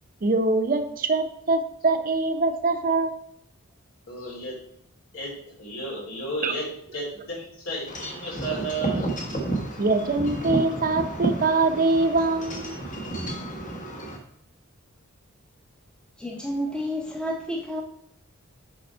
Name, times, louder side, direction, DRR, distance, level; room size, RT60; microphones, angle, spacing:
voice 1, 0.2-3.1 6.4-6.5 9.8-12.8, right 3 dB, 40° right, 7 dB, 0.6 m, -23 dB
voice 2, 4.0-4.6 5.1-5.3 5.6-6.6 6.9-9.1, right 2 dB, 70° left, -3 dB, 3.1 m, -33 dB
Wind chime / Wind, 7.9-14.2, right 2 dB, 35° left, 1.1 m, -31 dB
voice 3, 16.2-17.8, equal, 5° left, -1 dB, 0.7 m, -30 dB
6.0 x 5.3 x 4.3 m, 0.69 s
head